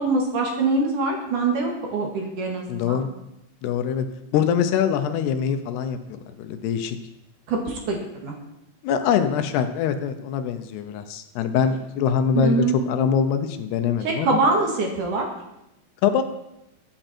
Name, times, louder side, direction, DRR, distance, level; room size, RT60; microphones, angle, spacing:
voice 1, 0.0-3.0 7.5-8.3 12.3-12.7 14.0-15.3, right 3 dB, 55° right, 1 dB, 3.0 m, -23 dB
voice 2, 2.7-3.1 3.6-4.1 4.3-7.0 8.8-14.4 16.0-16.2, left 7 dB, 80° left, 8 dB, 2.9 m, -23 dB
23.0 x 9.0 x 4.4 m, 0.87 s
omnidirectional pair, 4.9 m